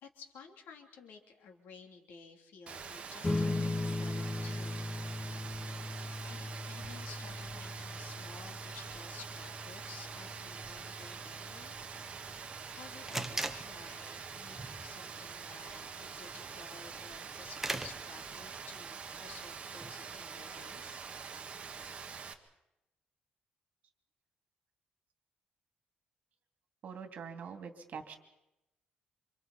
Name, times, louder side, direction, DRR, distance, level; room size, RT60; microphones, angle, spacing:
voice 1, 0.0-4.9 6.2-11.9 12.3-21.0, left 5 dB, 85° left, 3 dB, 3.3 m, -54 dB
Rain, 2.7-22.3, right 6 dB, 40° right, 1.7 m, -45 dB
sound 1, 3.2-14.0, left 2 dB, 15° left, 1.0 m, -39 dB
sound 2, 12.4-22.2, right 2 dB, 10° right, 1.3 m, -46 dB
voice 2, 26.8-28.2, right 6 dB, 55° right, 5 dB, 2.8 m, -44 dB
28.5 x 26.0 x 4.3 m, 0.90 s
cardioid pair, 145°, 3 cm